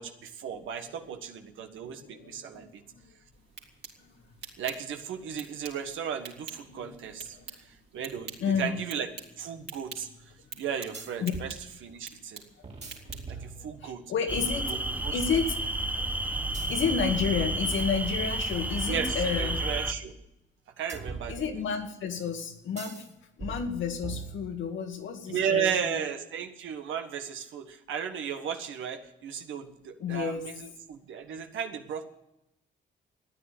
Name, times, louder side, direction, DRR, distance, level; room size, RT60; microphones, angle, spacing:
voice 1, 0.0-2.8 4.6-8.3 8.6-9.1 9.4-10.1 10.6-11.5 11.8-12.4 13.3-14.0 14.7-15.2 18.8-20.1 20.8-21.6 25.3-32.1, right 8 dB, 80° right, 5 dB, 1.5 m, -35 dB
voice 2, 2.0-2.6 2.9-3.0 4.0-4.2 6.7-7.5 8.4-8.7 11.2-11.3 12.0-12.1 13.1-15.6 15.9-16.1 16.7-19.6 21.3-23.0 23.4-26.0 30.0-30.5, left 6 dB, 75° left, 5 dB, 2.2 m, -31 dB
sound 1, 3.3-13.5, right 5 dB, 55° right, 3.4 m, -48 dB
sound 2, 10.9-11.6 12.6-13.9 16.5-18.2 20.9-21.9 22.8-23.1 23.4-24.8, right 3 dB, 35° right, 2.5 m, -41 dB
sound 3, 14.3-19.9, right 2 dB, 10° right, 0.9 m, -31 dB
14.0 x 9.9 x 9.7 m, 0.88 s
cardioid pair, 90°, 20 cm